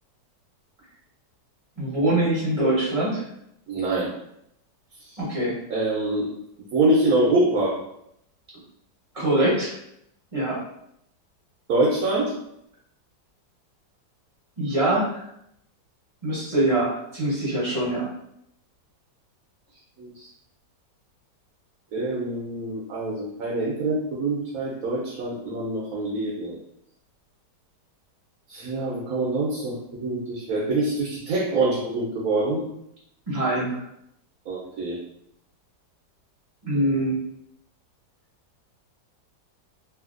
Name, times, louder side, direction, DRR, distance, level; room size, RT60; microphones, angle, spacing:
voice 1, 1.8-3.2 5.2-5.6 9.1-9.7 10.3-10.6 14.6-15.2 16.2-18.1 33.3-33.8 36.6-37.2, right 1 dB, 25° right, -8 dB, 0.8 m, -23 dB
voice 2, 3.7-4.1 5.7-6.3 6.7-7.8 11.7-12.3 20.0-20.3 21.9-26.6 28.5-32.6 34.5-35.0, right 2 dB, 65° right, -4 dB, 1.0 m, -25 dB
3.2 x 2.7 x 2.5 m, 0.75 s
omnidirectional pair, 1.9 m